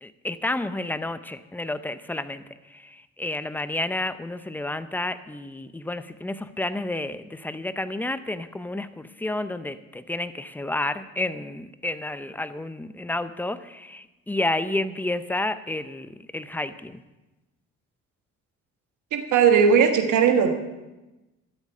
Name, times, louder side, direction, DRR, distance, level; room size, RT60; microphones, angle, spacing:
voice 1, 0.0-17.0, left 2 dB, 5° left, 12 dB, 0.6 m, -30 dB
voice 2, 19.1-20.6, right 7 dB, 80° right, 6 dB, 1.4 m, -18 dB
12.5 x 8.4 x 5.5 m, 1.1 s
cardioid pair, 90°, 30 cm